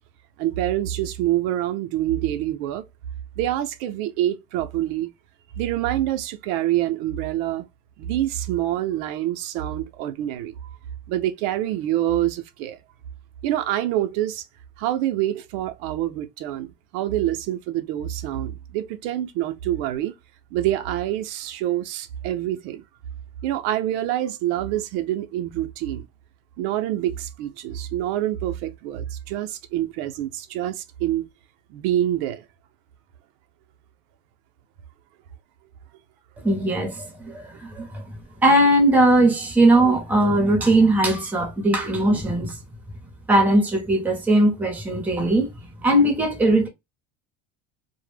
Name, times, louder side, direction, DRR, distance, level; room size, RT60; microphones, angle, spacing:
voice 1, 0.4-2.9 3.4-5.1 5.6-7.7 8.0-10.8 11.1-12.8 13.4-14.5 14.8-20.1 20.5-22.8 23.4-26.1 26.6-31.3 31.7-32.5, right 13 dB, 75° right, 0.5 m, -26 dB
voice 2, 36.4-38.0 38.4-42.6 43.3-45.5 45.8-46.7, right 1 dB, 5° right, 0.5 m, -19 dB
2.0 x 2.0 x 3.1 m
cardioid pair, 160°, 33 cm